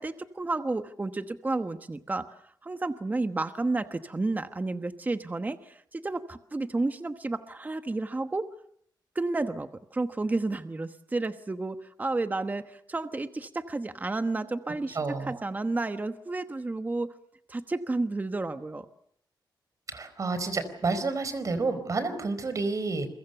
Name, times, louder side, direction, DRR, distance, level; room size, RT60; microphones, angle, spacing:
voice 1, 0.0-2.3 2.6-8.5 9.1-17.1 17.5-18.9, right 2 dB, 20° right, 9 dB, 1.1 m, -31 dB
voice 2, 14.9-15.3 19.9-23.1, right 3 dB, 45° right, 11 dB, 4.6 m, -29 dB
29.0 x 23.5 x 6.9 m, 0.66 s
wide cardioid pair, 120°, 8 cm